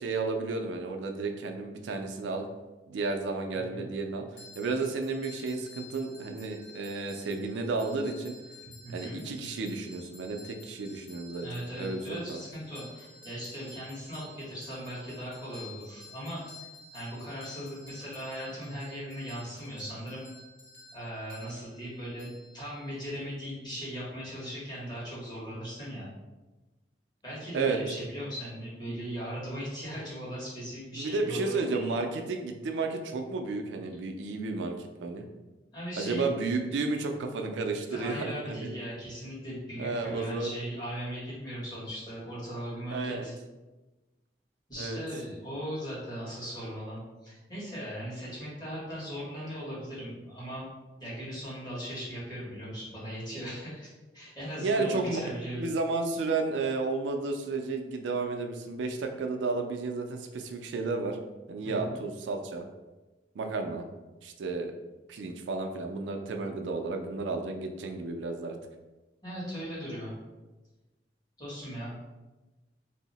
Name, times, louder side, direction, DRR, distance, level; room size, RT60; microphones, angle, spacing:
voice 1, 0.0-2.4 2.9-4.2 4.6-8.3 8.9-11.5 11.8-12.4 27.5-27.8 28.9-29.0 30.9-35.3 36.0-38.7 39.8-40.5 42.9-43.3 44.8-45.0 54.6-55.2 55.6-61.2 61.5-62.6 63.4-63.9 64.2-64.7 65.1-68.5, right 3 dB, 80° right, 4 dB, 0.4 m, -32 dB
voice 2, 3.5-3.8 8.6-9.2 11.4-16.7 16.9-20.3 20.9-26.1 27.2-31.9 35.7-36.3 37.9-43.3 44.7-50.7 51.0-53.9 54.1-55.7 61.6-62.0 69.2-70.1 71.4-71.9, equal, 25° left, -9 dB, 1.3 m, -38 dB
sound 1, 4.4-23.1, left 3 dB, 85° left, 0.9 m, -52 dB
2.7 x 2.0 x 3.9 m, 1.1 s
head